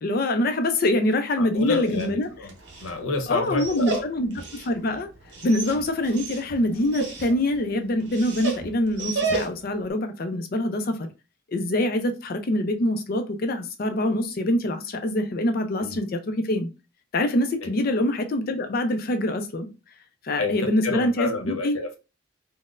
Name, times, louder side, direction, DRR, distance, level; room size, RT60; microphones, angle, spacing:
voice 1, 0.0-2.3 3.3-5.1 5.4-11.1 11.5-16.7 17.1-19.7 20.2-21.8, left 1 dB, 45° left, 0.4 m, -25 dB
voice 2, 1.4-2.5 2.8-4.0 15.8-16.0 17.6-17.7 20.4-22.0, left 3 dB, 85° left, 0.8 m, -29 dB
Dog, 1.5-9.8, right 3 dB, 55° right, 0.8 m, -34 dB
3.9 x 2.0 x 2.4 m
head